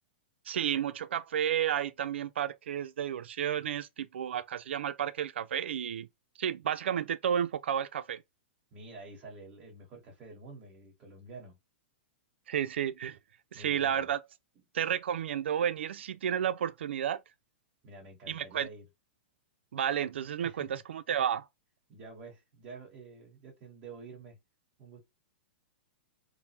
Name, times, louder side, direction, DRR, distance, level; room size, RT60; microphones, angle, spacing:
voice 1, 0.5-6.1 6.4-8.2 12.5-13.2 13.5-14.2 14.7-17.2 18.3-18.7 19.7-21.5, right 9 dB, 90° right, 0.4 m, -32 dB
voice 2, 8.7-11.6 13.5-14.1 17.8-18.8 20.4-20.7 21.9-24.4 24.8-25.0, right 3 dB, 20° right, 1.1 m, -48 dB
3.2 x 2.0 x 2.8 m
supercardioid pair, 180°, 6 cm